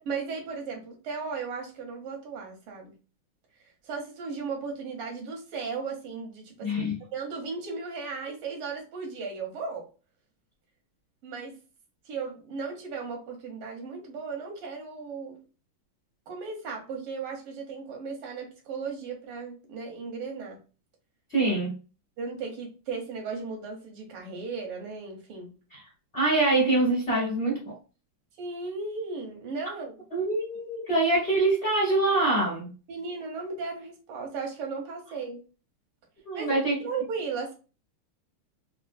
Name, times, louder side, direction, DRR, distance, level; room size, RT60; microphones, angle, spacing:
voice 1, 0.0-2.9 3.8-9.9 11.2-11.6 12.1-15.4 16.3-20.6 22.2-25.5 28.4-30.0 32.9-35.4 36.3-37.5, right 4 dB, 85° right, 1 dB, 1.9 m, -36 dB
voice 2, 6.6-6.9 21.3-21.7 25.7-25.8 26.1-27.7 30.1-32.7 36.2-36.8, right 2 dB, 35° left, -4 dB, 1.0 m, -24 dB
4.3 x 2.2 x 2.5 m, 0.34 s
omnidirectional pair, 2.4 m